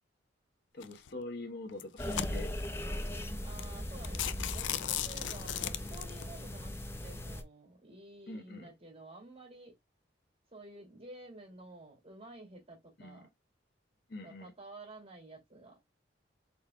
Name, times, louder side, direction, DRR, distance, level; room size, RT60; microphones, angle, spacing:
voice 1, 0.7-2.5 8.3-8.7 13.0-13.2 14.1-14.5, left 2 dB, 60° left, 1.3 m, -43 dB
sound 1, 0.8-1.1 1.7-2.7 3.2-3.3 3.6-3.7 4.0-6.2, left 11 dB, 85° left, 0.5 m, -36 dB
sound 2, 2.0-7.4, left 1 dB, 15° left, 0.8 m, -39 dB
voice 2, 3.4-9.7 10.5-13.3 14.2-15.8, right 2 dB, 35° right, 2.5 m, -51 dB
5.3 x 4.3 x 2.3 m
head